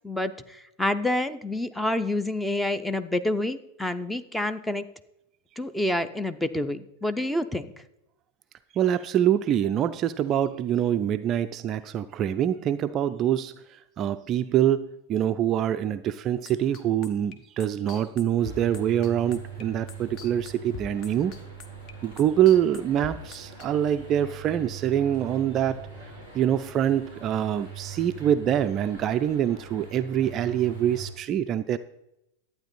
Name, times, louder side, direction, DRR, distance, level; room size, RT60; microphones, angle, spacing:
voice 1, 0.0-4.8 5.6-7.7, left 1 dB, 5° left, 12 dB, 0.6 m, -28 dB
voice 2, 8.7-21.3 22.0-25.9 26.3-31.8, right 10 dB, 30° right, 11 dB, 0.4 m, -25 dB
sound 1, 16.4-23.7, left 4 dB, 35° left, 1.1 m, -42 dB
sound 2, 18.4-31.1, right 6 dB, 60° left, 4.2 m, -42 dB
11.5 x 9.0 x 4.1 m, 0.86 s
figure-of-eight pair, 90°, 0 cm